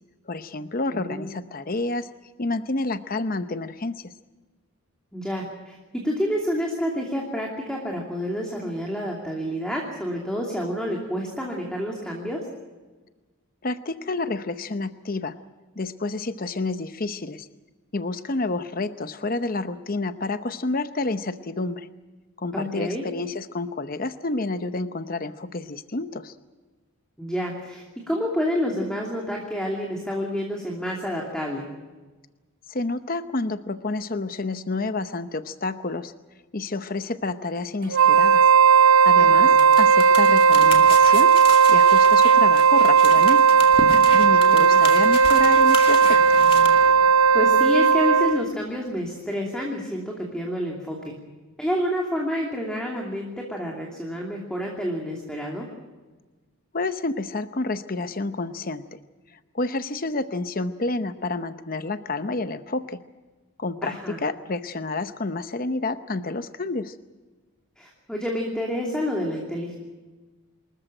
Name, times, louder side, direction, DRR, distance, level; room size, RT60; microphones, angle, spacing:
voice 1, 0.3-2.1 2.4-4.1 13.6-15.3 15.8-17.5 17.9-21.9 22.4-26.3 32.7-36.1 36.5-38.5 38.8-41.3 41.7-43.6 44.1-46.4 56.7-59.0 59.5-63.0 63.6-66.9, left 2 dB, 40° left, 11 dB, 0.8 m, -29 dB
voice 2, 0.9-1.3 5.1-5.8 6.0-12.4 22.5-23.0 27.2-31.6 39.2-39.6 44.4-44.8 47.3-51.0 51.6-55.7 63.8-64.2 67.8-69.8, equal, 5° left, -1 dB, 2.7 m, -29 dB
Wind instrument woodwind instrument, 37.9-48.5, right 6 dB, 70° right, 0.6 m, -16 dB
sound 1, 39.6-46.7, left 3 dB, 25° left, 2.3 m, -34 dB
Car passing by, 43.4-49.3, right 1 dB, 25° right, 5.9 m, -47 dB
26.5 x 14.0 x 9.0 m, 1.2 s
head